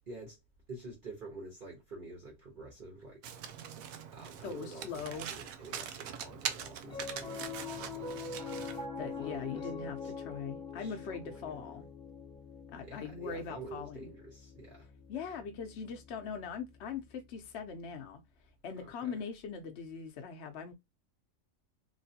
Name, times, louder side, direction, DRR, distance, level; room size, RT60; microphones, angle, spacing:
voice 1, 0.1-0.4 0.7-3.2 4.1-8.3 9.2-9.7 10.0-10.1 10.8-11.6 12.8-14.9 18.8-19.2, right 2 dB, 40° right, 1.3 m, -48 dB
Domestic sounds home sounds, 3.2-8.9, right 8 dB, 85° right, 1.0 m, -42 dB
voice 2, 4.4-5.3 9.0-11.9 12.7-14.1 15.1-18.2 18.6-20.7, left 6 dB, 60° left, 0.8 m, -41 dB
Piano, 6.8-17.3, left 4 dB, 5° left, 0.9 m, -44 dB
3.1 x 2.9 x 2.8 m
omnidirectional pair, 1.4 m